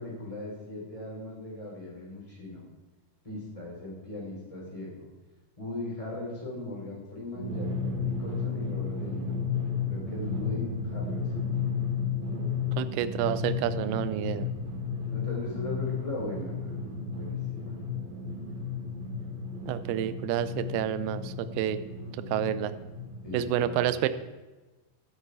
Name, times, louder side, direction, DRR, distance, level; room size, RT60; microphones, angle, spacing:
voice 1, 0.0-2.6 3.2-5.0 5.6-7.7 8.0-9.3 9.9-11.5 15.1-16.9 17.2-17.7 23.2-24.1, left 2 dB, 10° left, -4 dB, 3.7 m, -38 dB
Drum, 7.3-23.5, left 5 dB, 55° right, 4.2 m, -33 dB
voice 2, 12.8-14.5 19.7-21.8 22.3-22.7 23.3-24.1, right 11 dB, 80° right, 13 dB, 2.5 m, -29 dB
14.5 x 8.1 x 4.8 m, 1.2 s
omnidirectional pair, 4.5 m